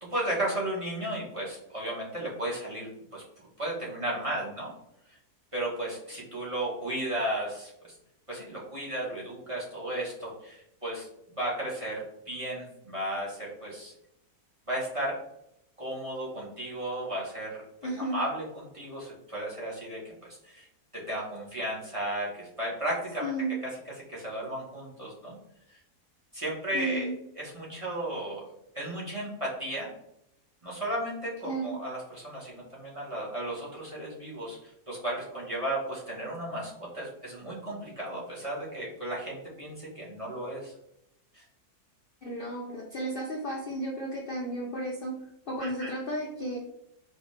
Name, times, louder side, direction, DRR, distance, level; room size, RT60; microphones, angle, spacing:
voice 1, 0.0-4.7 5.5-7.7 8.3-11.1 11.3-13.9 14.7-15.1 15.8-17.6 18.0-20.7 20.9-23.3 24.1-25.4 26.3-27.1 27.4-28.4 28.7-29.9 30.6-40.7 41.3-41.4 45.6-45.9, right 1 dB, 25° right, -4 dB, 0.8 m, -34 dB
voice 2, 17.8-18.2 23.2-23.6 26.7-27.2 31.4-31.8 42.2-46.6, right 1 dB, 80° left, -2 dB, 0.4 m, -33 dB
4.3 x 2.3 x 3.1 m, 0.78 s
omnidirectional pair, 1.7 m